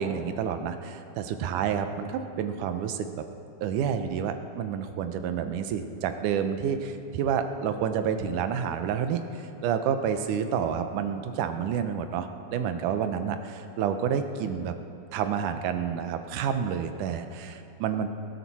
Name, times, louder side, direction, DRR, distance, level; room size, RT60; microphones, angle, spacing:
voice 1, 0.0-3.1 3.6-14.7 15.1-18.1, right 7 dB, 90° right, 8 dB, 2.4 m, -29 dB
18.5 x 17.0 x 4.2 m, 2.8 s
omnidirectional pair, 3.5 m